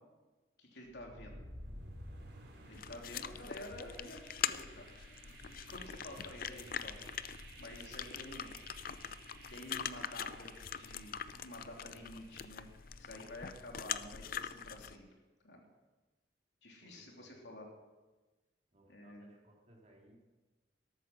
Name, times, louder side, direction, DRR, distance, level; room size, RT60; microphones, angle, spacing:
voice 1, 0.6-1.4 2.6-4.9 5.4-8.7 9.2-12.7 13.0-15.0 15.4-15.6 16.6-17.7 18.9-19.3, left 1 dB, 80° left, 0 dB, 3.2 m, -50 dB
sound 1, 0.8-12.7, right 1 dB, 70° right, 3.7 m, -54 dB
sound 2, 2.7-15.0, left 8 dB, 55° left, 0.5 m, -43 dB
voice 2, 16.8-17.4 18.7-20.2, right 1 dB, 40° right, -1 dB, 3.0 m, -63 dB
13.0 x 13.0 x 6.1 m, 1.2 s
head